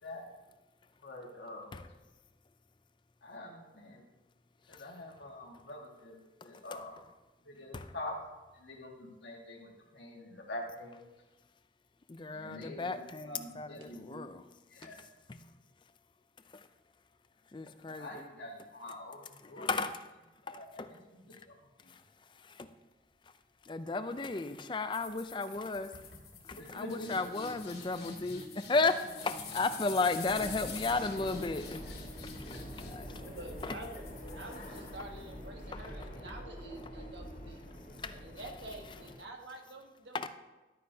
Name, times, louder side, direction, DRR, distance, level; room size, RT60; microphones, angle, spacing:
voice 1, 1.0-1.7 3.2-4.0 4.7-7.0 7.4-8.2 8.5-11.0 12.3-14.2 14.7-15.0 18.0-19.7 20.4-21.9 26.6-27.3 31.9-32.0, left 1 dB, 80° left, 0 dB, 1.7 m, -46 dB
voice 2, 6.4-6.8 7.7-7.9 12.1-14.4 14.8-15.0 15.3-15.5 16.5-16.7 17.5-18.3 19.4-20.1 20.5-21.0 21.9-22.7 23.6-26.1 26.4-31.9 32.2-33.2 33.6-33.8 35.7-36.1 37.9-38.2 40.1-40.3, left 3 dB, 25° left, 10 dB, 0.4 m, -35 dB
sound 1, 24.9-35.4, left 4 dB, 65° left, 1.9 m, -47 dB
sound 2, 30.3-39.2, equal, 45° left, 1.8 m, -46 dB
voice 3, 33.2-37.6 38.1-40.2, right 1 dB, 80° right, 2 dB, 1.4 m, -48 dB
12.0 x 9.4 x 2.8 m, 1.1 s
head